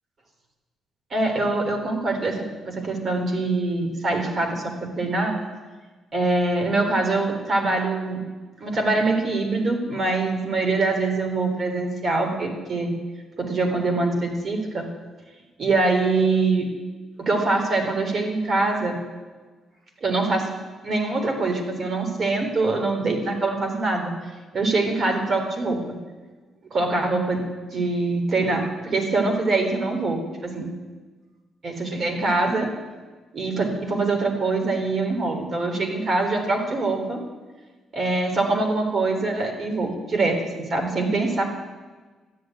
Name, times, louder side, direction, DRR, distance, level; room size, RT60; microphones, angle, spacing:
voice 1, 1.1-5.4 6.1-8.2 8.6-12.9 13.4-14.9 15.6-16.7 17.2-19.0 20.0-20.5 20.8-24.1 24.5-25.8 26.7-30.7 31.6-32.7 33.3-37.2 37.9-41.4, right 3 dB, 45° right, 2 dB, 3.6 m, -24 dB
14.0 x 9.2 x 9.3 m, 1.3 s
cardioid pair, 90°, 0 cm